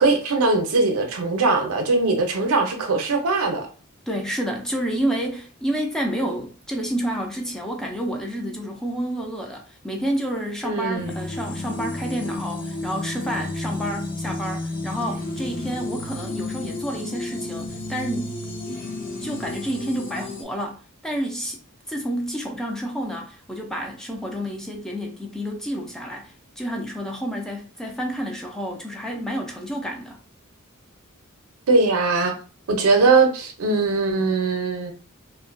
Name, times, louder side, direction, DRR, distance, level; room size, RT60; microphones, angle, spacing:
voice 1, 0.0-3.7 10.6-11.2 31.7-32.3 32.7-34.9, right 3 dB, 80° right, 0.6 m, -20 dB
voice 2, 4.1-18.4 19.2-21.6 21.9-30.2, equal, 5° left, 0.3 m, -29 dB
sound 1, 10.9-20.4, left 2 dB, 40° left, 0.6 m, -32 dB
2.4 x 2.2 x 2.4 m
head